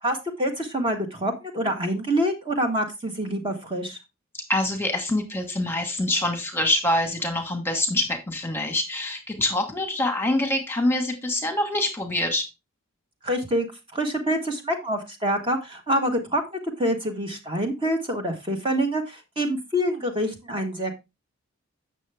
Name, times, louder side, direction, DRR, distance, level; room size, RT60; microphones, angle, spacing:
voice 1, 0.0-4.0 13.2-13.6 13.9-20.9, equal, 25° right, 3 dB, 1.3 m, -26 dB
voice 2, 4.3-12.5, left 1 dB, 10° left, 4 dB, 1.4 m, -25 dB
8.3 x 6.6 x 3.4 m, 0.24 s
head